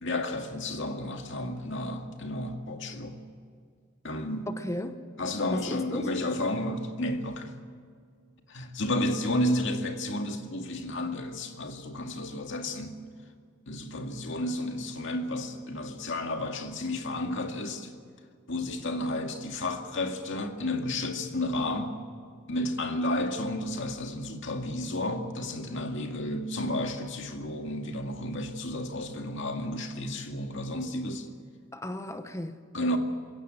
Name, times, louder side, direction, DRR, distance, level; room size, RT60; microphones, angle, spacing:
voice 1, 0.0-3.2 4.0-4.5 5.2-7.5 8.5-13.0 13.7-17.9 18.5-22.0 22.5-31.3 32.7-33.0, left 1 dB, 65° left, 2.2 m, -32 dB
voice 2, 4.5-5.0 5.5-6.1 31.7-32.6, left 1 dB, 15° left, 0.9 m, -35 dB
21.5 x 17.5 x 7.7 m
head